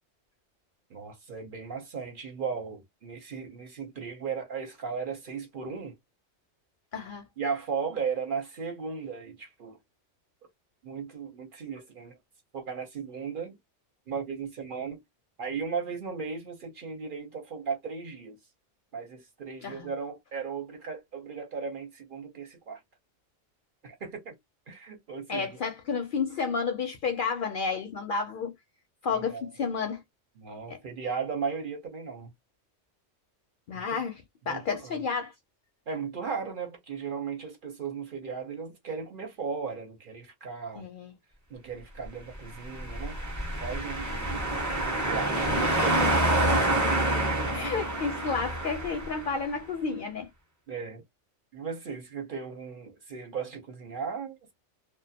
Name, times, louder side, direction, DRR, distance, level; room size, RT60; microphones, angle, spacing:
voice 1, 0.9-6.0 7.4-9.8 10.8-12.2 12.5-13.5 14.1-15.0 15.4-18.4 18.9-22.8 23.8-24.3 24.7-25.6 29.1-29.5 30.4-32.3 33.7-34.0 34.5-35.0 35.9-40.8 41.5-43.2 43.6-44.4 45.0-45.5 45.8-46.3 50.7-51.0 51.5-54.5, right 5 dB, 55° right, 0.8 m, -36 dB
voice 2, 6.9-7.2 19.6-19.9 25.3-28.5 29.0-30.0 30.7-30.8 33.7-35.3 40.8-41.1 47.5-50.3, left 5 dB, 60° left, 0.6 m, -31 dB
sound 1, 42.7-49.4, right 1 dB, 20° right, 0.5 m, -27 dB
2.4 x 2.2 x 2.7 m
omnidirectional pair, 1.2 m